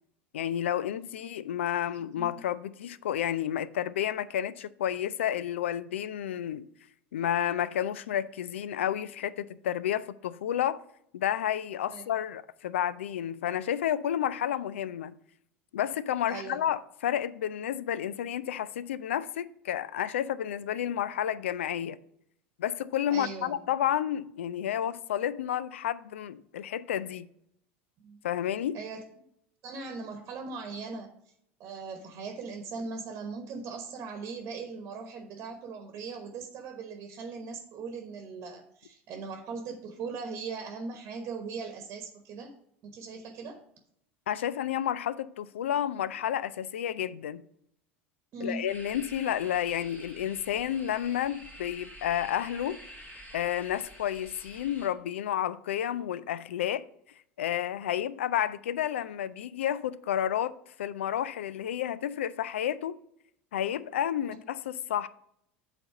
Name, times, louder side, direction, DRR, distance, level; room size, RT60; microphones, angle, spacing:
voice 1, 0.3-6.7 7.1-10.8 11.1-15.1 15.7-22.0 22.6-27.3 28.2-28.8 44.3-47.4 48.4-52.8 53.3-56.9 57.4-60.5 60.8-63.0 63.5-65.1, left 10 dB, 80° left, 0.4 m, -31 dB
voice 2, 16.3-16.6 23.1-23.6 28.0-28.2 28.7-29.0 29.6-31.1 31.6-42.5 42.8-43.6 48.3-48.7, right 4 dB, 45° right, 1.1 m, -39 dB
sound 1, 48.7-54.9, equal, 20° left, 2.2 m, -48 dB
7.8 x 4.2 x 5.8 m
hypercardioid pair, 80°, 7 cm